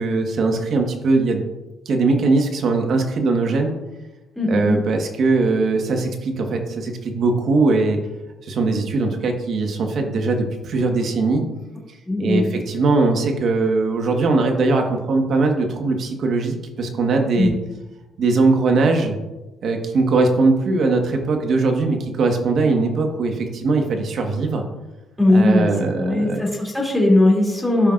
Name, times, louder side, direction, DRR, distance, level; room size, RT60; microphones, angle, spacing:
voice 1, 0.0-1.4 1.8-3.7 4.5-8.0 8.4-11.4 12.2-17.5 18.2-19.2 19.6-24.6 25.3-26.4, right 3 dB, 65° right, 3 dB, 1.4 m, -20 dB
voice 2, 4.4-4.8 12.1-12.4 17.4-17.5 25.2-25.7 26.0-27.9, left 2 dB, 5° left, -4 dB, 2.8 m, -18 dB
13.5 x 5.5 x 2.5 m, 1.0 s
cardioid pair, 90°, 0 cm